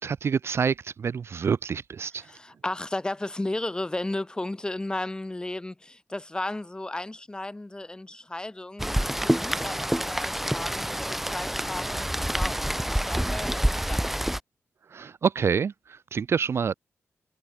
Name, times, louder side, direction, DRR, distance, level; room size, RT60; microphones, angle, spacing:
voice 1, 0.0-2.3 14.9-16.7, right 6 dB, 55° right, 0.4 m, -27 dB
voice 2, 2.2-12.0 12.3-14.1, left 2 dB, 15° left, 1.0 m, -34 dB
Rain, 8.8-14.4, equal, 5° right, 0.5 m, -27 dB
cardioid pair, 90°, 5 cm